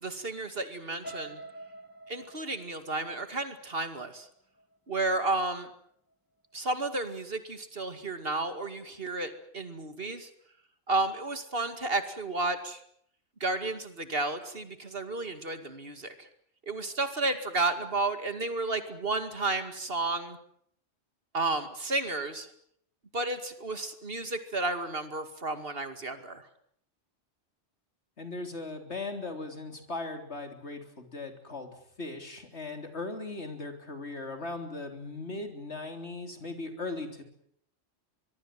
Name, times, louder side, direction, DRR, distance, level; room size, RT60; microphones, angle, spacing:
voice 1, 0.0-1.4 2.1-4.3 4.9-5.7 6.5-10.3 10.9-12.8 13.4-16.3 16.7-20.4 21.3-22.5 23.1-26.5, right 2 dB, 55° right, 9 dB, 2.5 m, -32 dB
sound 1, 1.0-5.0 5.5-5.8 6.1-6.2, right 1 dB, 15° left, 2.4 m, -47 dB
voice 2, 28.2-37.2, left 3 dB, 65° left, 6 dB, 3.9 m, -38 dB
24.0 x 23.0 x 7.6 m, 0.68 s
omnidirectional pair, 1.2 m